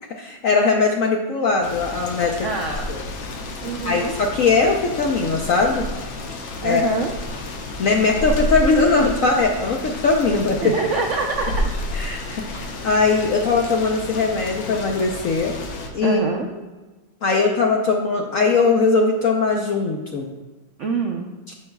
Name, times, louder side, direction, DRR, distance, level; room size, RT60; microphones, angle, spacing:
voice 1, 0.2-2.4 2.9-3.0 3.8-5.8 6.6-6.8 7.8-10.7 11.9-15.6 15.9-16.2 17.2-20.3, left 4 dB, 65° left, 1 dB, 0.8 m, -20 dB
sound 1, 1.6-15.9, left 1 dB, 80° left, 1.7 m, -31 dB
voice 2, 2.4-2.9 3.6-4.1 6.6-7.1 10.6-11.7 14.0-14.2 16.0-16.5 20.8-21.3, right 4 dB, 75° right, 2 dB, 0.7 m, -25 dB
13.5 x 5.4 x 2.3 m, 1.2 s
omnidirectional pair, 2.1 m